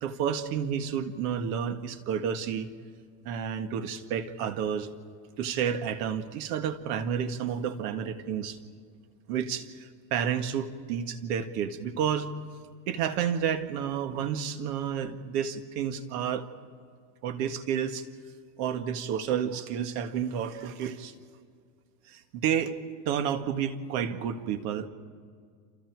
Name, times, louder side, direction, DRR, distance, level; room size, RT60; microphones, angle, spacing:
voice 1, 0.0-2.7 3.2-4.9 5.4-8.6 9.3-12.3 12.9-16.5 17.2-18.1 18.6-21.1 22.1-22.8 23.1-24.9, right 8 dB, 65° right, 8 dB, 2.0 m, -30 dB
29.5 x 27.5 x 4.8 m, 2.1 s
supercardioid pair, 125°, 49 cm